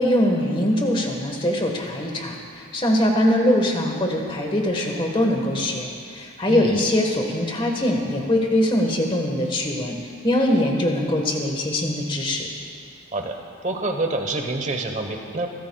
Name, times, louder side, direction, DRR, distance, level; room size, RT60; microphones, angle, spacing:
voice 1, 0.0-2.3 2.7-9.9 10.2-12.5, left 1 dB, 25° left, 1 dB, 1.4 m, -22 dB
voice 2, 6.5-6.8 13.1-13.3 13.6-15.5, right 2 dB, 35° right, 4 dB, 1.0 m, -27 dB
24.0 x 14.0 x 2.3 m, 2.4 s
head